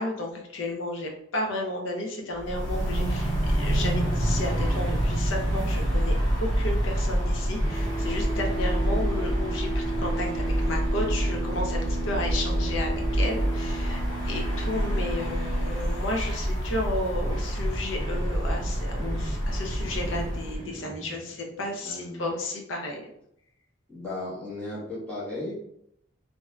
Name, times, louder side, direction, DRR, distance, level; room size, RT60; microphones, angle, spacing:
voice 1, 0.0-6.1 6.4-23.1, left 1 dB, 90° left, 1 dB, 0.7 m, -33 dB
sound 1, 2.3-20.6, equal, 70° left, 1.3 m, -27 dB
sound 2, 5.1-7.3 7.6-21.6, right 2 dB, 20° right, 0.6 m, -37 dB
voice 2, 8.5-9.1 21.8-22.3 23.9-25.5, left 2 dB, 5° left, -9 dB, 1.3 m, -36 dB
3.2 x 2.8 x 2.4 m, 0.75 s
head